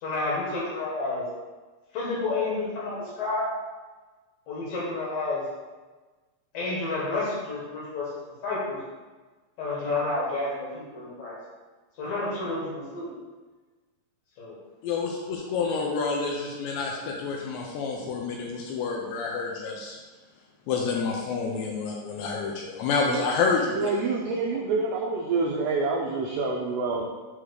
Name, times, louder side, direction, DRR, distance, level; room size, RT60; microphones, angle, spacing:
voice 1, 0.0-1.3 1.9-3.5 4.5-5.4 6.5-8.1 8.4-8.8 9.6-11.4 12.0-13.1 14.4-14.5, left 3 dB, 60° left, -5 dB, 2.6 m, -30 dB
voice 2, 14.8-20.0 20.7-23.9, left 4 dB, 75° left, -1 dB, 2.8 m, -28 dB
voice 3, 23.7-27.0, right 3 dB, 85° right, -1 dB, 2.3 m, -27 dB
7.9 x 3.7 x 6.4 m, 1.3 s
omnidirectional pair, 5.6 m